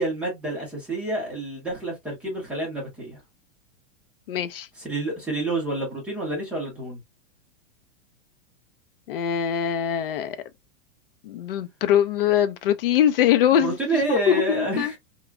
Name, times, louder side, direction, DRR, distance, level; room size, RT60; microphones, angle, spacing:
voice 1, 0.0-3.2 4.8-7.0 13.6-15.0, right 2 dB, 5° right, 0.7 m, -28 dB
voice 2, 4.3-4.7 9.1-10.4 11.2-14.9, left 10 dB, 50° left, 0.4 m, -22 dB
2.9 x 2.2 x 2.3 m
supercardioid pair, 175°, 38 cm